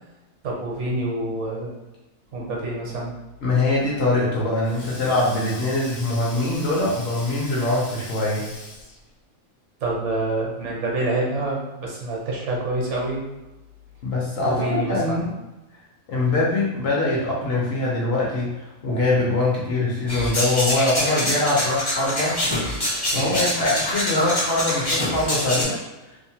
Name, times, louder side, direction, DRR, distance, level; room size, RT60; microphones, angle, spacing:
voice 1, 0.4-1.7 2.3-3.1 9.8-13.2 14.5-15.3 23.1-23.3, right 2 dB, 70° right, -2 dB, 0.9 m, -27 dB
voice 2, 3.4-8.5 14.0-15.3 16.1-22.4 23.1-25.8, left 2 dB, 60° left, -4 dB, 0.8 m, -23 dB
Sink (filling or washing), 4.4-9.1, left 2 dB, 80° left, 1.1 m, -41 dB
sound 1, 20.1-25.6, left 1 dB, 35° left, 0.4 m, -25 dB
2.7 x 2.0 x 2.8 m, 1.0 s
omnidirectional pair, 1.4 m